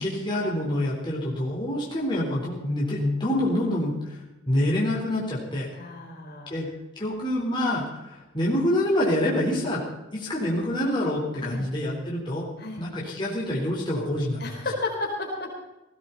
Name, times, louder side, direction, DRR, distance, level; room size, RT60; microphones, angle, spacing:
voice 1, 0.0-4.2 4.5-5.7 6.5-6.7 7.0-9.8 10.1-12.5 12.8-14.4, left 1 dB, 25° left, -5 dB, 4.1 m, -26 dB
voice 2, 5.7-6.6 11.3-11.7 12.6-12.8 14.4-15.5, left 2 dB, 50° left, -1 dB, 4.4 m, -33 dB
19.0 x 16.5 x 4.2 m, 1.0 s
head